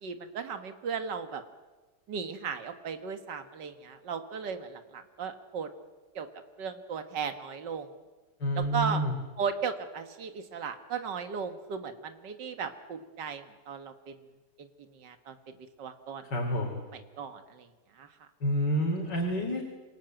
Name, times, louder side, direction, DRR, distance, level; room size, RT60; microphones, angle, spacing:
voice 1, 0.0-1.4 2.1-5.7 6.2-6.3 6.6-7.9 8.5-9.0 9.4-14.2 14.6-14.7 14.9-15.4 15.8-16.2 16.9-17.7 18.0-18.1, right 6 dB, 85° right, 8 dB, 2.1 m, -36 dB
voice 2, 8.4-9.1 16.2-16.8 18.4-19.6, equal, 90° left, 1 dB, 3.9 m, -28 dB
27.0 x 18.5 x 9.0 m, 1.2 s
omnidirectional pair, 1.8 m